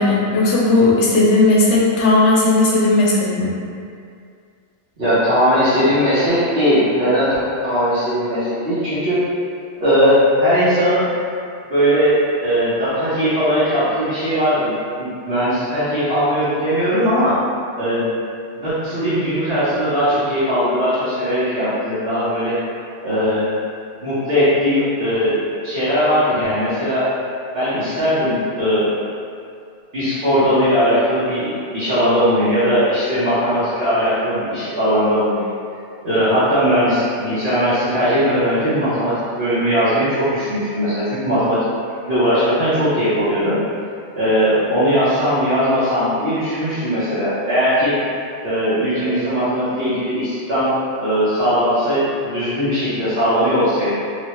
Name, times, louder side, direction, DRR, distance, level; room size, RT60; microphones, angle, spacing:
voice 1, 0.0-3.5, left 2 dB, 85° left, -4 dB, 1.0 m, -15 dB
voice 2, 5.0-7.3 7.6-9.2 9.8-11.0 11.7-12.1 12.4-17.4 17.8-18.1 18.6-22.6 23.0-23.5 24.0-25.4 25.6-27.1 27.5-28.9 29.9-35.5 36.0-41.6 42.1-43.6 44.2-47.9 48.4-50.7 51.0-53.9, equal, 60° right, -15 dB, 1.1 m, -19 dB
3.1 x 2.2 x 3.0 m, 2.3 s
omnidirectional pair, 1.2 m